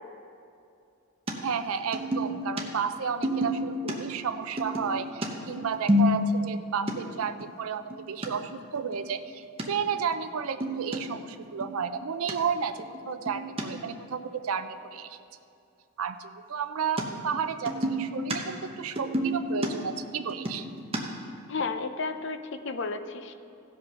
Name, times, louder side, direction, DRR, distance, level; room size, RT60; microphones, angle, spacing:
sound 1, 1.3-1.4 1.9-2.6 3.2-4.0 4.6-6.6 6.9-7.0 7.4-7.5 7.8-8.3 8.8-9.0 9.6-9.7 10.1-10.2 10.4-11.0 11.4-11.8 12.3-12.4 12.8-13.6 17.0-17.1 17.3-18.4 18.6-21.0, left 1 dB, 25° right, 0.9 m, -28 dB
voice 1, 1.4-15.2 16.0-20.6, right 6 dB, 80° right, 9 dB, 0.5 m, -32 dB
voice 2, 21.5-23.3, left 4 dB, 55° left, 9 dB, 0.5 m, -32 dB
16.0 x 5.3 x 5.7 m, 2.6 s
head